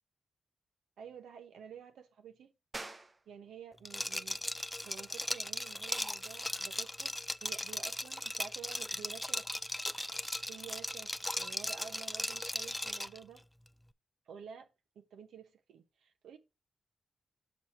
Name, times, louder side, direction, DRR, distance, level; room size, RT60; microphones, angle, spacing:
voice 1, 1.0-2.5 3.3-4.4 4.8-9.5 10.5-13.4 14.3-14.7 14.9-16.4, right 7 dB, 90° right, 0.9 m, -51 dB
sound 1, 2.7-13.0, right 2 dB, 30° right, 0.6 m, -56 dB
Liquid, 3.9-13.2, left 1 dB, 10° left, 0.4 m, -38 dB
6.4 x 4.0 x 5.8 m
cardioid pair, 65°, 0 cm